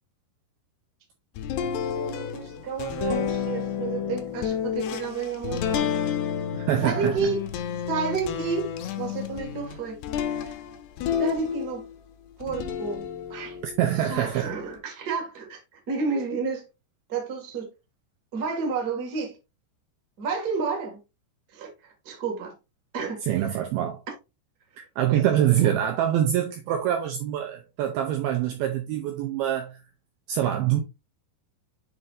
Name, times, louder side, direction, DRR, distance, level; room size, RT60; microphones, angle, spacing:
sound 1, 1.4-12.0 12.4-14.7, left 8 dB, 80° left, 2.8 m, -31 dB
voice 1, 1.7-5.9 6.8-7.4 7.9-8.7 9.0-10.6 11.2-11.9 12.4-13.6 13.9-16.7 17.1-17.7 18.3-19.4 20.2-21.0 21.5-22.5 22.9-23.7 25.1-25.2 25.6-25.8, right 5 dB, 35° right, 1.6 m, -31 dB
voice 2, 6.5-7.3 13.6-14.5 23.3-24.0 24.8-29.8 30.3-30.8, right 11 dB, 80° right, 2.3 m, -25 dB
9.7 x 4.4 x 2.6 m
omnidirectional pair, 5.1 m